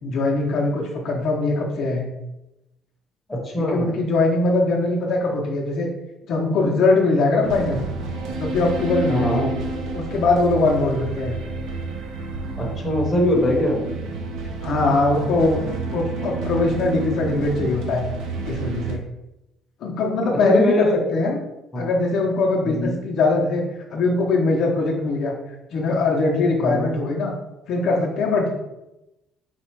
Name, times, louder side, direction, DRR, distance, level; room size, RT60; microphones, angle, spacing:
voice 1, 0.0-2.1 3.6-5.9 6.3-7.8 8.4-9.4 9.9-11.3 14.6-15.6 15.9-18.0 18.4-19.0 19.8-21.4 21.8-23.6 23.9-25.3 25.7-27.3 27.7-28.5, left 3 dB, 50° left, -2 dB, 0.7 m, -21 dB
voice 2, 3.3-3.9 9.0-9.5 12.6-13.8 20.4-21.1 21.7-21.9 22.6-23.0 26.6-26.9, left 1 dB, 10° left, -3 dB, 0.9 m, -22 dB
sound 1, 7.4-19.0, right 3 dB, 75° right, 0.6 m, -30 dB
4.1 x 2.4 x 4.5 m, 0.94 s
cardioid pair, 170°, 0 cm